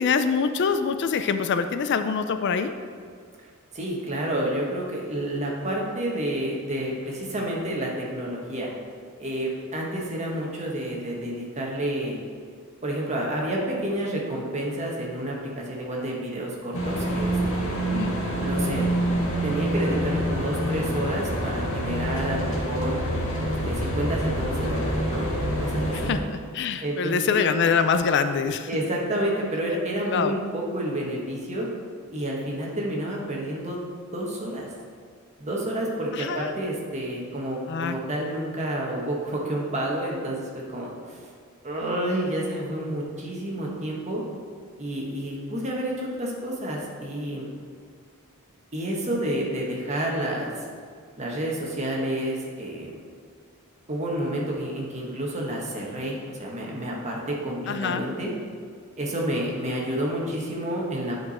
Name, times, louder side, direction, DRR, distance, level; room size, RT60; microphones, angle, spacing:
voice 1, 0.0-2.7 17.9-18.1 25.9-28.7 30.1-30.3 36.1-36.5 37.7-38.0 57.7-58.0, left 6 dB, 55° left, 9 dB, 0.4 m, -25 dB
voice 2, 3.7-8.7 9.2-12.2 12.8-17.8 18.4-18.9 19.4-23.0 23.4-26.1 26.8-27.5 28.7-31.7 32.1-33.8 34.1-34.7 35.4-41.2 41.6-44.2 44.8-47.5 48.7-50.5 51.2-53.0 53.9-58.3 59.0-61.2, right 1 dB, 35° right, -2 dB, 1.4 m, -29 dB
sound 1, 16.7-26.1, equal, 85° left, 1.7 m, -26 dB
10.0 x 4.7 x 4.2 m, 2.1 s
head